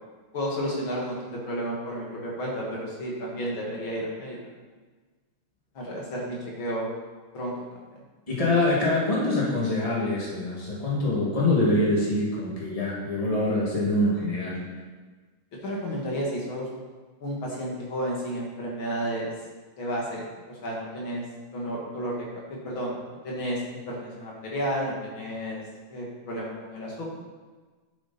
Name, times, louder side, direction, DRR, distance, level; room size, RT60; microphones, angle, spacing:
voice 1, 0.3-4.4 5.7-6.9 7.3-7.5 7.9-8.0 15.6-16.7 17.2-19.3 19.8-21.2 21.5-22.2 22.5-25.6 25.9-27.0, equal, 75° left, -4 dB, 2.9 m, -32 dB
voice 2, 8.3-14.6, left 2 dB, 15° left, -6 dB, 2.4 m, -24 dB
9.8 x 7.7 x 4.3 m, 1.4 s
omnidirectional pair, 2.2 m